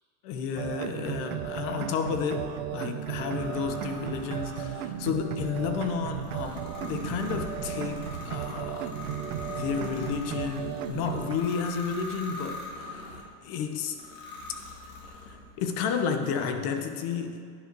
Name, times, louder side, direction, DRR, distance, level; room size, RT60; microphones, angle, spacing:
voice 1, 0.2-9.0 9.5-14.0 15.0-17.4, left 6 dB, 50° left, 6 dB, 0.9 m, -32 dB
sound 1, 0.6-11.4, right 12 dB, 70° right, 0.6 m, -35 dB
sound 2, 3.0-13.3 13.9-15.5, left 2 dB, 70° left, 2.1 m, -42 dB
9.8 x 5.4 x 4.0 m, 2.2 s
supercardioid pair, 125°, 44 cm